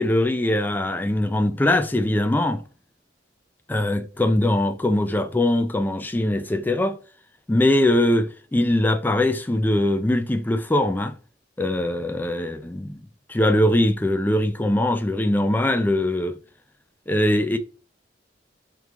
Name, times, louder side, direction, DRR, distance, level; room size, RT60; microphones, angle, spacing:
voice 1, 0.0-2.6 3.7-7.0 7.5-11.1 11.6-13.0 13.3-16.4 17.1-17.6, left 1 dB, 10° left, 0.3 m, -21 dB
3.1 x 2.3 x 3.5 m
head